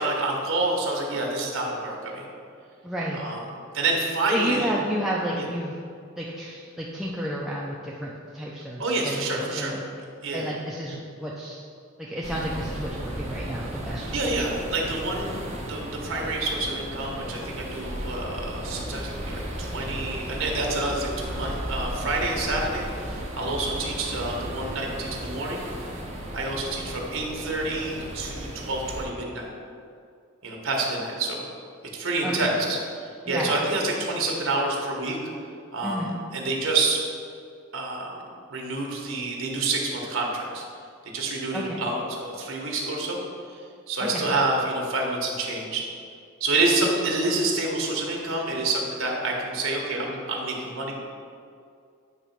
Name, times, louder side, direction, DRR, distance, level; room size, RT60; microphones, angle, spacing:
voice 1, 0.0-2.3 3.2-3.4 3.7-4.7 5.4-5.5 8.8-9.8 10.2-10.5 14.1-25.7 26.3-29.5 30.4-31.5 31.9-35.2 35.7-37.0 37.7-38.1 38.5-40.6 41.0-43.2 43.9-45.9 46.4-50.9, right 2 dB, 70° right, -1 dB, 1.2 m, -28 dB
voice 2, 2.8-3.2 4.3-5.8 6.2-9.8 10.3-11.6 12.0-14.4 32.2-32.5 33.3-33.6 35.8-36.2 41.5-41.8 44.0-44.3, equal, ahead, -5 dB, 0.5 m, -31 dB
sound 1, 12.2-29.1, equal, 35° right, 1.0 m, -35 dB
8.1 x 3.0 x 5.8 m, 2.4 s
head